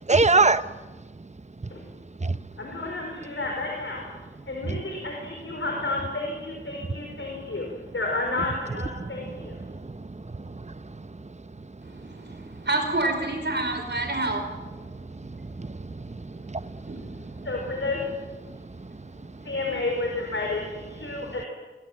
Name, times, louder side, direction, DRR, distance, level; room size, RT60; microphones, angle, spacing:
voice 1, 0.1-0.6 2.2-2.4 4.7-4.8 9.0-10.7 15.1-16.8 17.4-17.5, right 3 dB, 35° right, 13 dB, 1.0 m, -26 dB
voice 2, 2.6-4.0 4.5-7.7 7.9-9.6 17.4-18.0 19.4-21.5, left 2 dB, 80° left, 0 dB, 5.3 m, -31 dB
voice 3, 11.8-14.4 16.8-17.1 19.1-19.5, right 2 dB, 60° right, 4 dB, 5.1 m, -28 dB
26.5 x 23.0 x 7.6 m, 1.2 s
wide cardioid pair, 45°, 20 cm